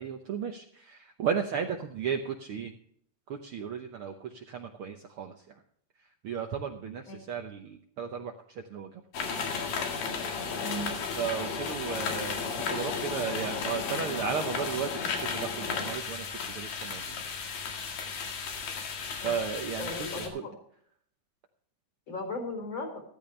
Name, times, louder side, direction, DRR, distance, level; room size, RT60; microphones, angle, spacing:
voice 1, 0.0-2.7 3.3-5.3 6.2-8.9 11.2-17.2 19.2-20.4, right 7 dB, 80° right, 4 dB, 1.2 m, -35 dB
sound 1, 9.1-20.3, left 5 dB, 85° left, 3.6 m, -34 dB
voice 2, 10.6-10.9 19.2-19.3 19.8-20.5 22.1-23.0, left 2 dB, 35° left, 3 dB, 4.6 m, -37 dB
14.5 x 14.0 x 3.3 m, 0.64 s
omnidirectional pair, 3.9 m